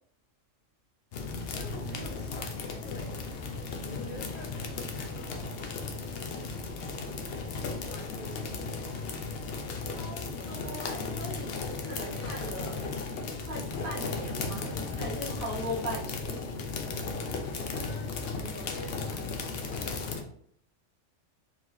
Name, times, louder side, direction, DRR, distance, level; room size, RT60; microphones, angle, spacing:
sound 1, 1.1-20.2, left 4 dB, 60° left, 0.7 m, -35 dB
voice 1, 1.5-3.3 3.8-5.6 6.1-7.6 7.9-8.7 17.7-19.9, equal, 80° left, -6 dB, 2.0 m, -48 dB
voice 2, 10.5-12.9 13.4-16.4, equal, 55° right, -4 dB, 1.0 m, -39 dB
4.5 x 2.9 x 3.1 m, 0.64 s
omnidirectional pair, 1.3 m